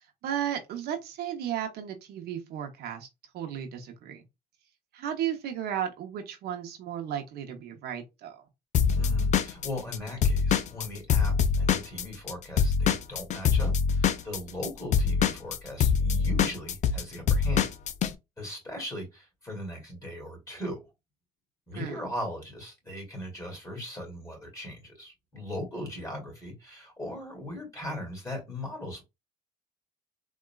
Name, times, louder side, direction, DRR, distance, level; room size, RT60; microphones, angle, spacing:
voice 1, 0.2-3.1 3.3-4.2 4.9-8.4 21.7-22.0, right 10 dB, 70° right, 0.7 m, -34 dB
Drum kit / Drum, 8.7-12.3 12.6-18.1, left 6 dB, 45° left, 0.4 m, -24 dB
voice 2, 8.9-17.7 18.4-20.8 21.7-29.0, left 1 dB, 20° left, 2.0 m, -38 dB
3.8 x 2.2 x 2.2 m
cardioid pair, 110°, 17 cm